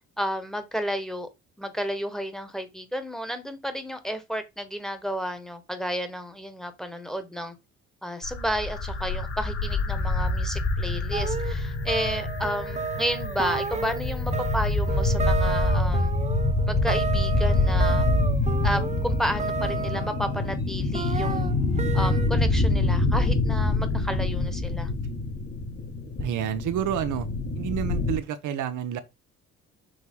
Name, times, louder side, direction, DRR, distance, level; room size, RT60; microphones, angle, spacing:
voice 1, 0.2-1.3 1.6-7.5 8.0-16.1 16.7-18.1 18.6-21.5 21.9-24.9, equal, ahead, 1.4 m, -32 dB
sound 1, 8.2-28.2, left 2 dB, 50° left, 3.2 m, -26 dB
sound 2, 11.1-20.6 20.9-22.3, right 5 dB, 25° right, 0.8 m, -32 dB
voice 2, 26.2-27.3 27.5-29.0, right 10 dB, 80° right, 0.9 m, -29 dB
6.4 x 3.1 x 5.5 m
cardioid pair, 90°, 30 cm